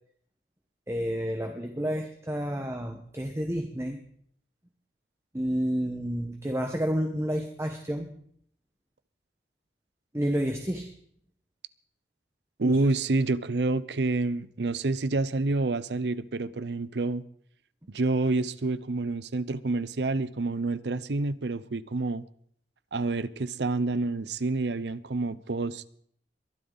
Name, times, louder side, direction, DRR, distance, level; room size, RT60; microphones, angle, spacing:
voice 1, 0.9-4.0 5.3-8.1 10.1-10.9 12.6-12.8, equal, 15° right, 1.2 m, -30 dB
voice 2, 12.6-17.2 17.9-22.2 22.9-25.9, right 3 dB, 75° right, 0.7 m, -28 dB
22.0 x 11.5 x 4.0 m
head